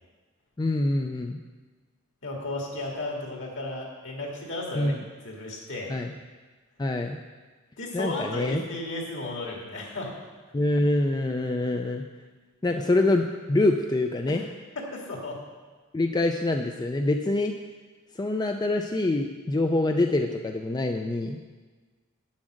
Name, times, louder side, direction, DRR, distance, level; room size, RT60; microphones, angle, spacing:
voice 1, 0.6-1.4 4.7-5.0 5.9-6.1 6.8-7.2 7.9-8.6 10.5-12.0 12.6-14.4 15.9-17.5 18.2-21.4, left 2 dB, 20° left, 4 dB, 0.4 m, -25 dB
voice 2, 2.2-5.0 5.2-5.9 7.8-10.1 14.3-14.4 14.8-15.4, left 2 dB, 65° left, -1 dB, 2.3 m, -34 dB
9.0 x 7.3 x 6.4 m, 1.4 s
head